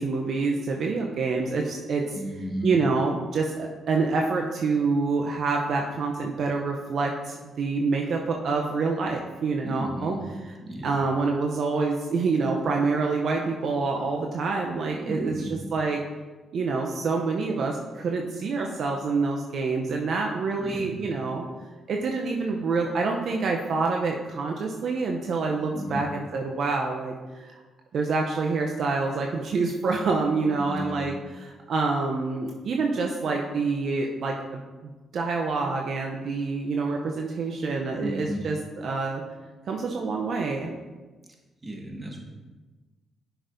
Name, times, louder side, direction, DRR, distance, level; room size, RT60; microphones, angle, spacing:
voice 1, 0.0-2.2 2.6-10.2 10.8-16.0 16.5-21.4 21.9-27.6 27.9-34.6 35.1-39.2 39.7-40.7, right 4 dB, 65° right, 1 dB, 0.7 m, -27 dB
voice 2, 2.1-2.8 9.6-10.2 10.6-11.0 15.0-15.5 20.6-21.0 25.7-26.0 30.6-31.0 38.0-38.4 41.6-42.3, equal, 25° right, 0 dB, 1.7 m, -34 dB
8.0 x 6.1 x 2.7 m, 1.2 s
supercardioid pair, 50°, 0 cm